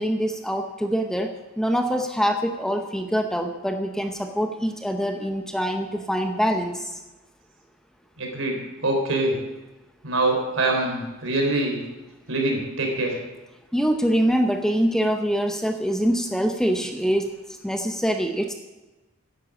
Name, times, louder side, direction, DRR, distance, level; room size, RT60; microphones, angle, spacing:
voice 1, 0.0-7.0 13.7-17.3 17.6-18.5, equal, 5° left, 5 dB, 0.8 m, -24 dB
voice 2, 8.2-9.4 10.0-11.8 12.3-13.2, right 2 dB, 70° right, 2 dB, 3.7 m, -24 dB
11.5 x 10.0 x 7.1 m, 1.1 s
head